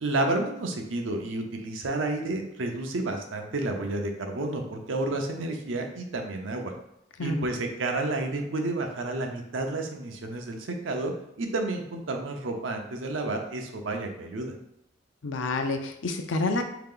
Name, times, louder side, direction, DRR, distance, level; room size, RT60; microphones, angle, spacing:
voice 1, 0.0-6.7 7.2-11.1 11.4-14.5, right 2 dB, 85° right, 3 dB, 0.6 m, -30 dB
voice 2, 15.2-16.6, left 2 dB, 75° left, 7 dB, 0.5 m, -28 dB
3.7 x 2.9 x 3.7 m, 0.80 s
head